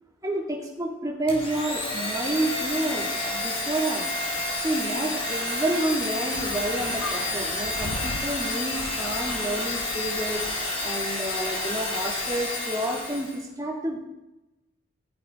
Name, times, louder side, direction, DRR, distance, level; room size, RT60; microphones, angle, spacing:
voice 1, 0.2-4.1 4.6-14.0, right 1 dB, 20° right, -1 dB, 3.1 m, -30 dB
Domestic sounds home sounds, 1.3-13.4, left 2 dB, 30° left, 4.8 m, -30 dB
sound 1, 6.3-10.9, left 3 dB, 80° left, 0.9 m, -39 dB
17.5 x 14.5 x 4.8 m, 0.97 s
head